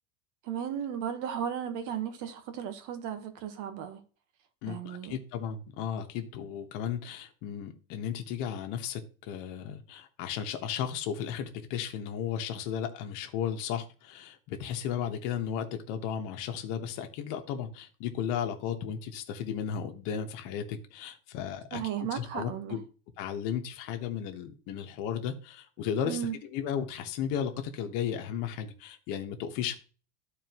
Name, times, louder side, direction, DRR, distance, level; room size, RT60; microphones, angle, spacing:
voice 1, 0.4-4.0 4.7-5.1 21.7-22.8 26.1-26.3, right 9 dB, 45° right, 1.4 m, -35 dB
voice 2, 4.6-21.8 22.1-22.8 23.2-29.7, left 8 dB, 45° left, 1.4 m, -35 dB
13.0 x 4.4 x 3.0 m
supercardioid pair, 150°, 43 cm